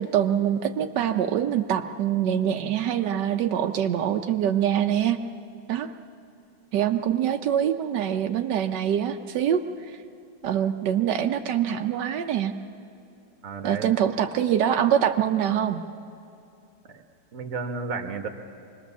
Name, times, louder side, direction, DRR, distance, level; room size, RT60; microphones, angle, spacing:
voice 1, 0.0-5.2 5.7-5.9 6.7-9.6 10.4-12.5 13.6-15.8, right 9 dB, 90° right, 6 dB, 1.4 m, -24 dB
voice 2, 13.4-14.0 16.8-17.0 17.3-18.3, right 4 dB, 55° right, 5 dB, 1.7 m, -32 dB
25.0 x 19.5 x 7.1 m, 2.6 s
omnidirectional pair, 1.8 m